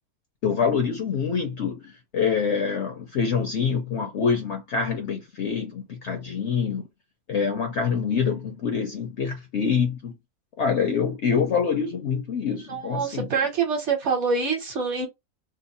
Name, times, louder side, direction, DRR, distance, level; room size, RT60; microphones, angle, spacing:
voice 1, 0.4-6.9 7.3-10.1 10.6-13.3, left 6 dB, 65° left, 0.7 m, -25 dB
voice 2, 12.7-15.1, right 5 dB, 55° right, 1.1 m, -25 dB
2.9 x 2.0 x 4.0 m
omnidirectional pair, 1.6 m